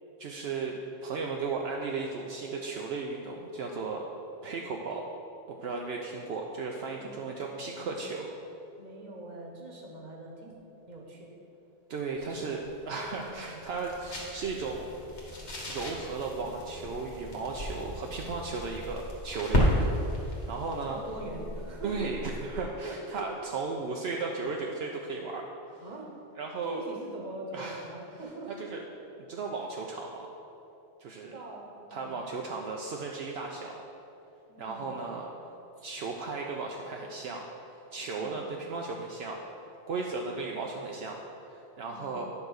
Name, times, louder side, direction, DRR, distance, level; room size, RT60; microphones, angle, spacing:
voice 1, 0.2-4.1 4.4-5.0 5.5-8.3 11.9-14.9 15.7-21.0 21.8-25.4 26.4-26.8 27.5-27.8 28.6-28.8 29.3-30.3 31.0-31.4 31.9-33.7 34.6-35.3 35.8-39.4 39.9-41.2 41.4-42.3, right 4 dB, 70° right, 0 dB, 0.8 m, -35 dB
voice 2, 7.0-7.3 7.6-8.2 8.8-10.6 10.9-11.3 12.3-12.6 13.2-13.6 20.5-22.1 22.5-23.3 25.8-26.1 26.7-28.7 31.2-32.2 34.5-35.0 38.1-38.4 40.6-40.8 41.9-42.3, right 2 dB, 45° right, 0 dB, 1.2 m, -43 dB
sound 1, 12.2-22.8, left 1 dB, 85° left, 1.8 m, -34 dB
9.6 x 3.9 x 6.3 m, 2.9 s
omnidirectional pair, 1.1 m